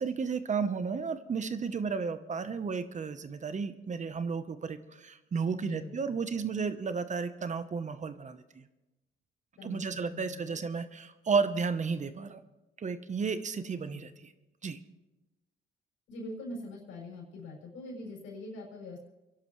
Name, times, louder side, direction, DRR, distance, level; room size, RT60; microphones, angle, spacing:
voice 1, 0.0-8.6 9.6-12.4 12.8-14.3 14.6-14.8, right 5 dB, 40° right, 11 dB, 1.0 m, -33 dB
voice 2, 5.5-5.9 9.6-9.8 10.1-10.6 13.6-14.2 16.1-19.0, left 2 dB, 90° left, -2 dB, 6.5 m, -43 dB
30.0 x 11.5 x 3.2 m, 1.0 s
cardioid pair, 90°, 20 cm